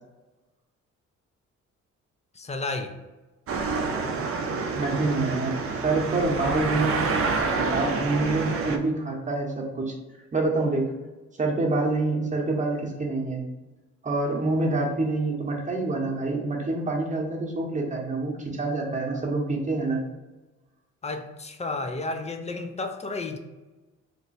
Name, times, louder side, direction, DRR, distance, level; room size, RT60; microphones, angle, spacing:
voice 1, 2.4-2.9 21.0-23.4, left 3 dB, 20° left, 6 dB, 0.4 m, -32 dB
sound 1, 3.5-8.8, right 4 dB, 50° right, 0.5 m, -28 dB
voice 2, 4.7-9.9 10.3-10.9 11.4-13.4 14.0-20.0, right 2 dB, 25° right, 0 dB, 0.9 m, -27 dB
3.0 x 2.1 x 4.1 m, 1.1 s
cardioid pair, 90°, 30 cm